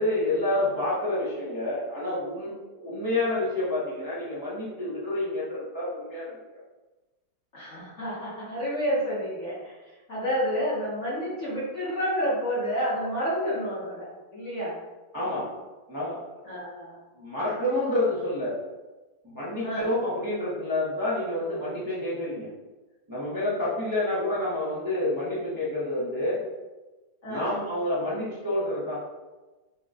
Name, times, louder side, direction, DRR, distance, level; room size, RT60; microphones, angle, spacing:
voice 1, 0.0-6.4 15.1-15.5 15.9-16.5 17.1-18.6 19.2-22.5 23.1-26.4 27.2-29.0, left 1 dB, 15° right, -10 dB, 0.8 m, -28 dB
voice 2, 7.5-9.7 10.1-14.8 16.5-17.0 19.6-19.9 27.2-27.5, equal, 45° left, -8 dB, 1.3 m, -29 dB
5.7 x 3.0 x 2.5 m, 1.2 s
omnidirectional pair, 2.1 m